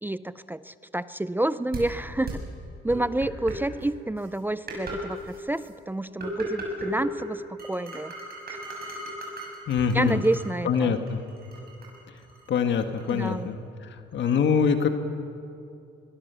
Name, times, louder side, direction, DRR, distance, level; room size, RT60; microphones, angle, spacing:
voice 1, 0.0-2.4 2.8-8.1 9.9-10.9 13.1-13.5, right 1 dB, 10° right, 14 dB, 0.5 m, -29 dB
sound 1, 1.7-1.8 2.3-2.4 2.9-3.5 4.2-4.3 4.7-5.0 5.3-5.7 6.2-7.3 7.6-10.5 10.7-13.3, right 2 dB, 50° right, 6.9 m, -36 dB
voice 2, 9.7-10.2 10.6-11.2 12.5-13.6 14.1-14.9, left 6 dB, 65° left, 7 dB, 1.6 m, -24 dB
23.0 x 22.0 x 6.9 m, 2.6 s
cardioid pair, 90°, 20 cm